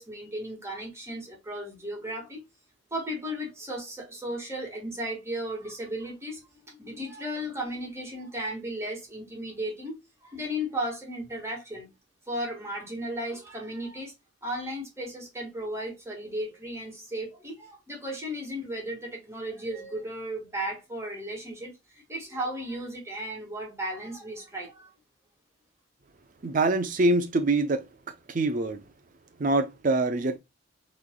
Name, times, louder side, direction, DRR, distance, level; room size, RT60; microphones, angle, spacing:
voice 1, 0.0-2.4 2.9-10.0 10.2-11.9 12.3-14.1 14.4-21.7 22.1-24.9, equal, 15° right, 1.7 m, -35 dB
voice 2, 26.4-28.8 29.4-30.4, right 2 dB, 40° right, 0.5 m, -25 dB
5.9 x 3.2 x 2.2 m
head